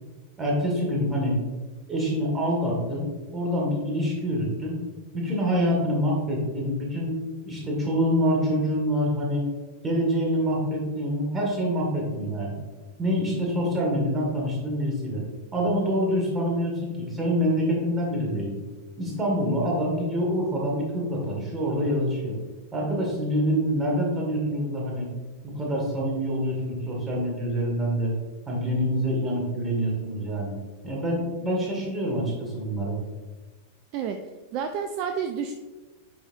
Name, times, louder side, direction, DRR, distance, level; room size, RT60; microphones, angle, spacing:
voice 1, 0.4-1.4 1.9-3.1 3.3-4.8 5.1-7.2 7.5-9.4 9.8-12.6 13.0-15.2 15.5-18.5 19.0-22.4 22.7-25.1 25.4-28.1 28.5-30.6 30.8-33.0, equal, 20° right, -2 dB, 2.0 m, -26 dB
voice 2, 34.5-35.5, right 7 dB, 45° right, 7 dB, 0.4 m, -29 dB
9.6 x 4.0 x 2.7 m, 1.3 s
figure-of-eight pair, 90°, 0 cm